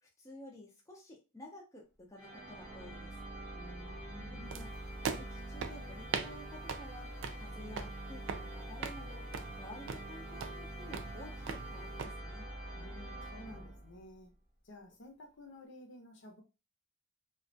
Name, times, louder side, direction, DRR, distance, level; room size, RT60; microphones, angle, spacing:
voice 1, 0.0-3.2 4.3-4.7 5.1-9.3 9.6-12.5, left 1 dB, 15° left, 0.4 m, -52 dB
sound 1, 2.2-14.1, right 1 dB, 5° right, 0.9 m, -45 dB
voice 2, 3.5-4.5 12.8-14.3 14.6-16.4, left 1 dB, 55° left, 0.6 m, -53 dB
sound 2, 4.5-12.1, right 6 dB, 60° right, 0.3 m, -42 dB
2.3 x 2.1 x 2.5 m
head